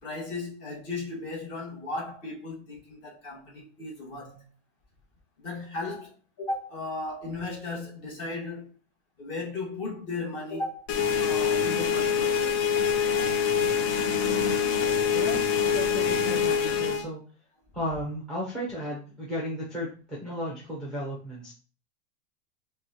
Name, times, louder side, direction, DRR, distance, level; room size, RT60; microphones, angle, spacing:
voice 1, 0.0-4.5 5.4-8.7 9.2-10.9 11.2-12.6, left 2 dB, 30° left, 1.5 m, -36 dB
sound 1, 10.9-17.0, left 7 dB, 55° left, 0.7 m, -25 dB
voice 2, 15.7-17.2 17.7-21.5, equal, ahead, 0.6 m, -34 dB
5.8 x 2.3 x 2.8 m
supercardioid pair, 170°, 36 cm